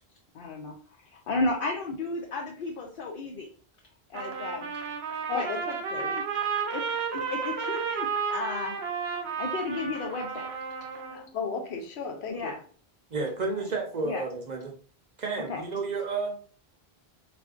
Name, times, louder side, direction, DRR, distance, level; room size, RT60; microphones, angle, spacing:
voice 1, 0.3-0.7 1.1-3.5 4.1-4.7 5.3-5.5 6.0-6.2 6.7-6.8 7.1-8.9 9.4-10.5 12.3-12.5 14.0-14.2 15.5-15.6, left 3 dB, 65° left, 0.7 m, -33 dB
Trumpet, 4.1-11.3, right 6 dB, 85° right, 0.9 m, -32 dB
voice 2, 5.3-6.2 11.1-12.5, left 5 dB, 90° left, 0.9 m, -35 dB
voice 3, 13.1-14.7 15.2-16.4, right 3 dB, 50° right, 0.6 m, -31 dB
3.6 x 2.5 x 2.4 m
omnidirectional pair, 1.1 m